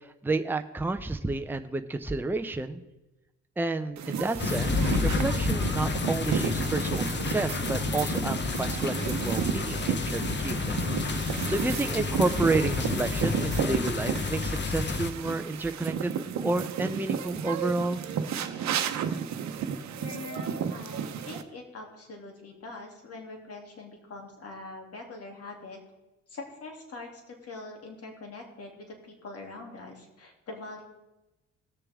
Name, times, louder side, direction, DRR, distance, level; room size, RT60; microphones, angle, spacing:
voice 1, 0.2-2.8 3.6-10.8 11.3-18.0, right 2 dB, 5° right, 7 dB, 0.7 m, -30 dB
sound 1, 4.0-21.4, right 7 dB, 65° right, 0.9 m, -33 dB
sound 2, 4.4-15.1, left 4 dB, 35° left, 0.9 m, -30 dB
voice 2, 19.9-25.8 26.3-30.8, left 3 dB, 50° left, 1 dB, 2.8 m, -43 dB
20.0 x 6.8 x 3.6 m, 0.99 s
cardioid pair, 90°, 30 cm